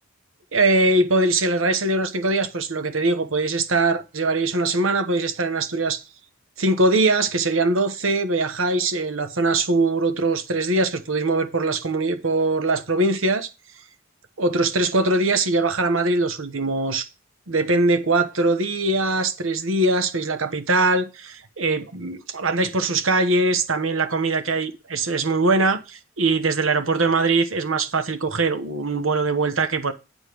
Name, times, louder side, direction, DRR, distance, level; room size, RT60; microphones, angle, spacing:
voice 1, 0.5-6.0 6.6-13.5 14.4-17.1 17.5-29.9, right 2 dB, 75° right, 1.2 m, -22 dB
9.9 x 4.1 x 6.8 m
head